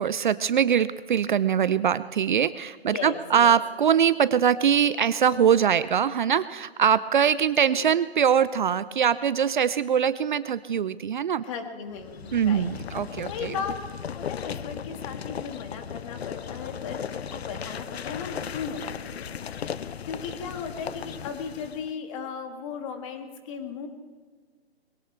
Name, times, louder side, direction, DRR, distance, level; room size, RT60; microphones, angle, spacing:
voice 1, 0.0-11.4 12.3-13.5, right 8 dB, 50° right, 16 dB, 0.5 m, -23 dB
voice 2, 2.9-3.5 7.8-7.9 11.4-12.7 13.3-13.7 14.1-23.9, left 6 dB, 30° left, 5 dB, 1.9 m, -36 dB
sound 1, 11.9-21.9, left 8 dB, 75° left, 0.7 m, -36 dB
22.0 x 17.5 x 3.4 m, 1.5 s
hypercardioid pair, 145°, 31 cm